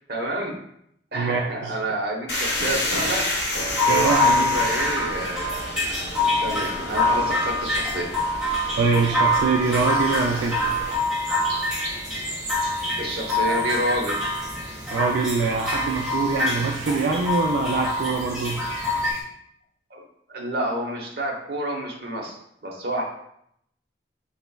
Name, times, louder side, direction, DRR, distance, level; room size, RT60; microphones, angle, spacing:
voice 1, 0.1-0.5 1.1-3.2 3.9-5.6 6.4-8.0 13.0-14.2 19.9-20.0 20.3-22.4 22.6-23.0, right 1 dB, 60° right, -1 dB, 0.9 m, -28 dB
voice 2, 1.1-1.7 3.9-4.5 8.8-10.6 14.9-18.6, right 4 dB, 85° right, 0 dB, 0.4 m, -24 dB
sound 1, 2.3-11.0, left 1 dB, 75° left, 1.0 m, -30 dB
sound 2, 3.7-19.1, left 1 dB, 5° right, 1.1 m, -25 dB
sound 3, 9.6-19.2, right 2 dB, 40° right, 1.1 m, -40 dB
4.1 x 3.9 x 2.2 m, 0.73 s
head